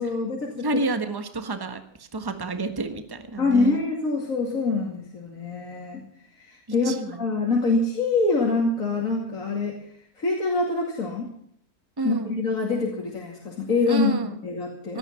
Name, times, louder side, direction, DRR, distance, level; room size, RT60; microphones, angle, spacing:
voice 1, 0.0-0.8 3.4-6.0 6.3-9.8 10.2-11.3 12.0-15.0, left 3 dB, 60° left, -1 dB, 2.9 m, -25 dB
voice 2, 0.6-3.8 6.8-7.2 12.0-12.4 13.9-14.4 14.9-15.0, right 3 dB, 15° right, 8 dB, 1.3 m, -29 dB
17.5 x 12.5 x 5.7 m, 0.66 s
omnidirectional pair, 1.6 m